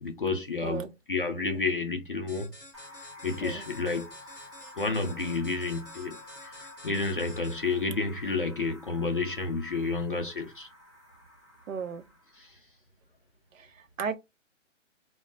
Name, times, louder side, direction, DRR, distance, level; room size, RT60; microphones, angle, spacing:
voice 1, 0.0-0.8 1.1-2.5 3.2-4.1 4.8-6.2 6.8-10.7 12.4-12.5, left 3 dB, 45° left, 0.4 m, -30 dB
sound 1, 2.3-7.8, left 1 dB, 5° right, 1.0 m, -50 dB
sound 2, 2.7-12.5, left 1 dB, 25° right, 0.5 m, -50 dB
voice 2, 11.7-12.0 13.5-14.2, right 6 dB, 80° right, 0.7 m, -35 dB
2.2 x 2.0 x 3.8 m
hypercardioid pair, 165°, 39 cm